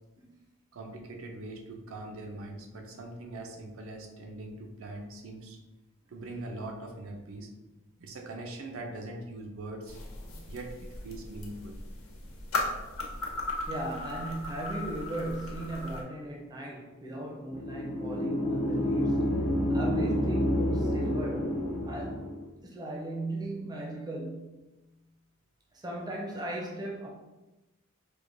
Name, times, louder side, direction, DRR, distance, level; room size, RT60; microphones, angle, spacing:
voice 1, 0.7-5.6 6.1-7.5 8.0-10.0 10.5-11.8, right 2 dB, 75° right, 0.5 m, -42 dB
sound 1, 9.9-16.0, left 2 dB, 85° left, 0.6 m, -37 dB
voice 2, 10.2-10.5 13.7-19.4 19.7-22.3 22.6-24.7 25.7-27.1, right 1 dB, 20° right, 0.5 m, -37 dB
sound 2, 17.5-22.5, equal, 70° left, 1.1 m, -29 dB
4.6 x 2.1 x 2.5 m
head